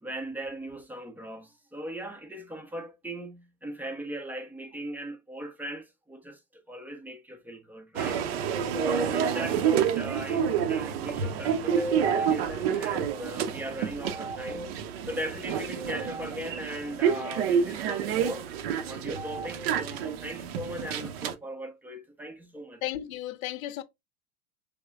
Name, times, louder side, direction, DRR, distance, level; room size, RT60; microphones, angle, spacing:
voice 1, 0.0-8.2 8.7-18.5 18.8-22.8, right 1 dB, 5° right, 0.5 m, -38 dB
sound 1, 8.0-21.3, right 8 dB, 40° right, 0.7 m, -29 dB
voice 2, 22.8-23.8, left 13 dB, 60° left, 0.7 m, -34 dB
6.2 x 3.5 x 2.4 m
figure-of-eight pair, 85°, 46 cm